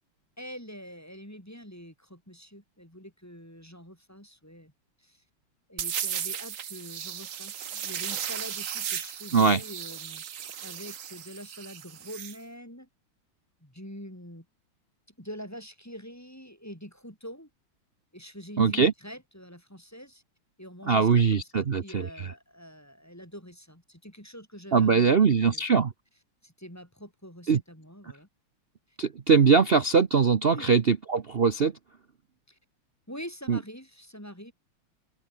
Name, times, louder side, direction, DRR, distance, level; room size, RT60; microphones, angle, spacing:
voice 1, 0.4-4.7 5.0-5.2 5.7-10.2 10.6-12.9 13.6-14.5 15.2-17.5 18.1-20.2 20.6-25.6 26.4-28.3 28.9-29.0 30.5-30.7 32.5-32.6 33.1-34.5, equal, 5° left, 5.8 m, -45 dB
sound 1, 5.8-12.4, right 9 dB, 50° right, 1.0 m, -35 dB
voice 2, 18.6-18.9 20.9-22.1 24.7-25.9 27.5-27.6 29.0-31.7 33.5-33.6, right 5 dB, 75° right, 0.5 m, -21 dB
open air
omnidirectional pair, 2.4 m